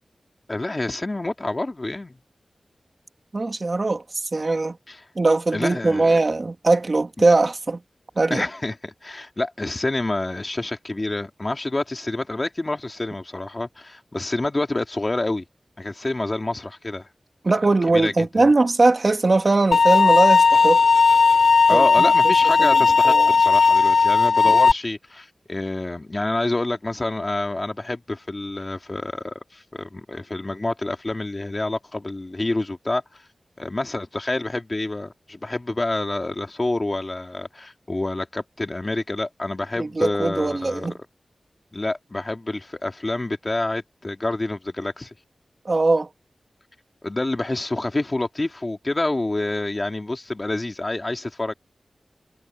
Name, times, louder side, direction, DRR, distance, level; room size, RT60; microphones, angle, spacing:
voice 1, 0.5-2.2 4.9-5.0 5.5-6.2 7.2-7.3 8.3-15.4 15.8-17.1 17.9-18.5 21.7-33.2 33.6-40.9 41.7-45.1 47.0-51.5, left 2 dB, 30° left, 2.5 m, -27 dB
voice 2, 3.3-4.8 5.2-7.8 8.2-8.5 17.4-20.8 21.7-22.1 22.6-23.3 39.8-40.9 45.7-46.1, right 3 dB, 45° right, 1.8 m, -20 dB
sound 1, 19.7-24.7, left 4 dB, 70° left, 0.3 m, -16 dB
wide cardioid pair, 80°, 0 cm